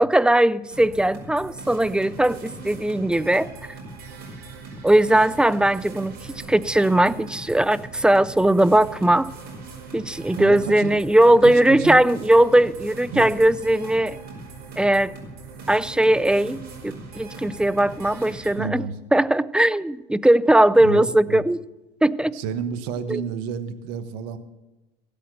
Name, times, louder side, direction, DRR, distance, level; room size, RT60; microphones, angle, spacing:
voice 1, 0.0-3.5 4.8-9.3 9.9-14.2 14.8-15.1 15.7-18.8 19.1-21.6 22.0-22.4 23.1-23.2, right 1 dB, 5° right, 18 dB, 0.4 m, -19 dB
sound 1, 0.7-18.5, right 3 dB, 50° right, 5.1 m, -40 dB
voice 2, 10.4-10.9 11.4-12.0 13.1-13.2 18.6-19.0 20.8-21.4 22.3-24.4, right 6 dB, 80° right, 11 dB, 1.3 m, -30 dB
16.0 x 8.6 x 6.8 m, 1.0 s
supercardioid pair, 95°, 20 cm